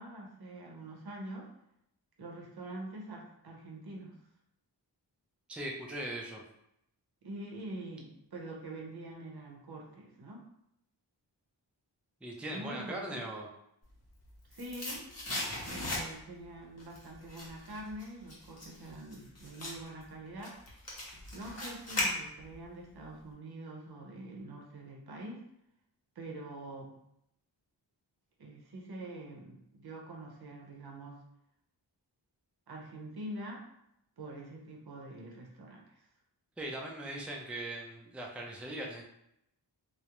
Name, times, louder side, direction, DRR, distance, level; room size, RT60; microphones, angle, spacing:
voice 1, 0.0-1.5 2.2-4.2 7.2-10.5 12.5-13.2 14.5-15.0 15.6-20.6 21.3-25.4 26.2-27.0 28.4-31.2 32.7-33.6 34.2-36.1, right 1 dB, 60° right, -1 dB, 0.7 m, -45 dB
voice 2, 5.5-6.4 12.2-13.5 36.6-39.0, right 1 dB, 5° right, 0 dB, 0.4 m, -40 dB
sound 1, 14.0-16.4 16.8-22.7 23.0-23.1, left 1 dB, 35° left, 0.8 m, -38 dB
2.3 x 2.0 x 2.9 m, 0.79 s
wide cardioid pair, 55°, 44 cm